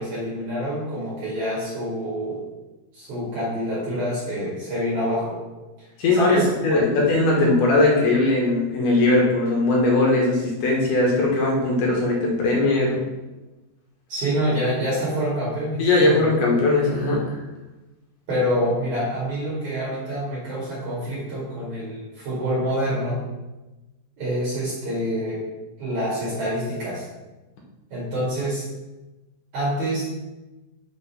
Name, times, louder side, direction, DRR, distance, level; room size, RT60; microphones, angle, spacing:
voice 1, 0.0-2.4 2.9-5.4 5.8-7.0 14.1-16.3 18.3-23.2 24.2-25.4 25.8-27.1 27.9-28.6 29.5-30.1, equal, 55° right, -8 dB, 3.1 m, -26 dB
voice 2, 6.0-13.0 15.8-17.2, left 2 dB, 65° left, -2 dB, 2.3 m, -19 dB
6.0 x 5.5 x 5.6 m, 1.1 s
omnidirectional pair, 4.6 m